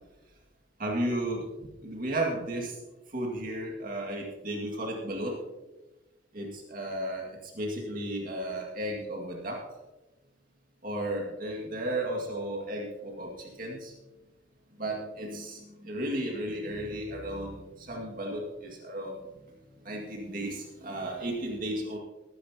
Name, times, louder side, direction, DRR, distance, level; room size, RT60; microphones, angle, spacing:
voice 1, 0.8-1.5 1.8-2.8 3.1-5.4 6.3-7.3 7.6-9.6 10.8-13.9 14.8-19.2 19.9-22.0, right 1 dB, 45° right, -1 dB, 2.1 m, -34 dB
21.0 x 10.0 x 2.9 m, 1.1 s
head